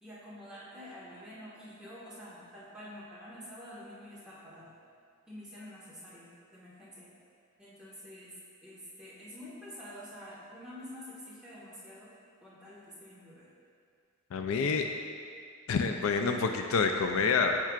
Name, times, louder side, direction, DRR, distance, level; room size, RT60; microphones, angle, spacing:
voice 1, 0.0-4.7 5.3-7.1 7.6-8.3 8.6-12.2 12.4-13.5, equal, 5° right, -10 dB, 1.6 m, -48 dB
voice 2, 14.3-14.9 15.7-17.6, left 4 dB, 75° left, 5 dB, 0.4 m, -27 dB
8.9 x 5.7 x 2.5 m, 2.2 s
head